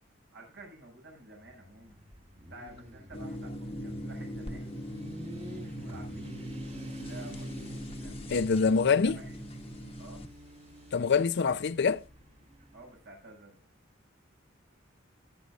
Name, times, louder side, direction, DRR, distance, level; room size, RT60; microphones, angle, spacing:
voice 1, 0.3-2.0 2.4-4.7 5.6-6.3 7.0-8.5 9.0-9.5 10.0-10.2 12.7-13.6, right 2 dB, 60° right, 6.7 m, -51 dB
Motorcycle, 1.4-13.1, equal, 35° right, 2.5 m, -48 dB
sound 1, 3.1-10.3, equal, 30° left, 1.2 m, -41 dB
voice 2, 8.3-9.2 10.9-12.0, left 5 dB, 60° left, 0.5 m, -25 dB
18.5 x 10.5 x 2.4 m
head